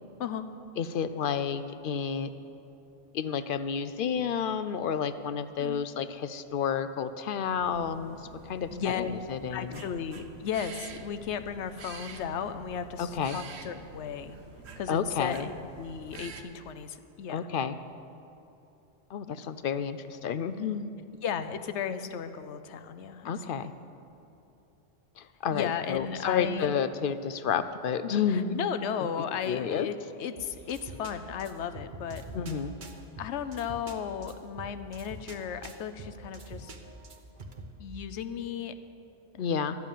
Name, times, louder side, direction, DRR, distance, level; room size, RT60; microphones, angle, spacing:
voice 1, 0.8-2.3 3.1-8.2 8.4-9.8 13.0-13.4 14.9-15.5 17.3-17.8 19.1-20.9 23.2-23.7 25.2-28.6 29.0-29.1 29.5-29.9 32.3-32.7 39.4-39.8, left 7 dB, 60° left, 12 dB, 0.6 m, -30 dB
sound 1, 7.6-16.4, right 4 dB, 70° right, 1.1 m, -47 dB
voice 2, 8.7-9.1 9.5-14.4 14.8-17.5 19.3-19.4 21.2-23.3 23.6-23.7 25.5-26.7 28.3-32.2 33.2-36.7 37.8-38.7 39.3-39.4, left 8 dB, 85° left, 11 dB, 1.0 m, -35 dB
sound 2, 30.4-37.7, right 2 dB, 50° right, 1.0 m, -46 dB
12.0 x 6.9 x 9.0 m, 2.8 s
omnidirectional pair, 1.1 m